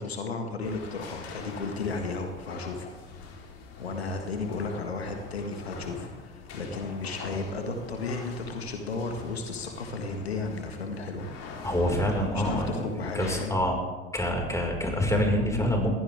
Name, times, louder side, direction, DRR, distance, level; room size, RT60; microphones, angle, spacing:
voice 1, 0.0-3.2 3.8-11.3 12.3-13.6, left 3 dB, 90° left, 4 dB, 1.8 m, -34 dB
sound 1, 0.6-13.4, left 4 dB, 50° left, 4.0 m, -43 dB
voice 2, 11.6-12.7 13.1-13.8 14.1-15.9, equal, 10° left, 1 dB, 5.4 m, -26 dB
21.5 x 15.5 x 3.7 m, 1.2 s
hypercardioid pair, 70°, 31 cm